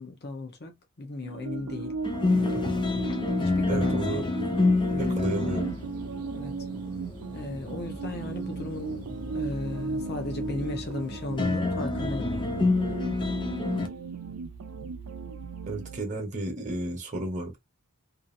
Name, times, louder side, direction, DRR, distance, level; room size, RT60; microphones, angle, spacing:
voice 1, 0.0-2.0 2.3-2.5 3.4-4.3 4.9-5.6 6.3-6.7 7.3-9.0 9.3-12.6, left 2 dB, 45° left, 0.8 m, -36 dB
sound 1, 1.2-16.0, right 4 dB, 85° right, 0.5 m, -36 dB
sound 2, 2.0-13.9, left 3 dB, 20° left, 0.4 m, -29 dB
voice 2, 3.7-4.2 5.0-5.6 15.7-17.6, right 2 dB, 35° right, 1.0 m, -32 dB
2.7 x 2.5 x 2.6 m
head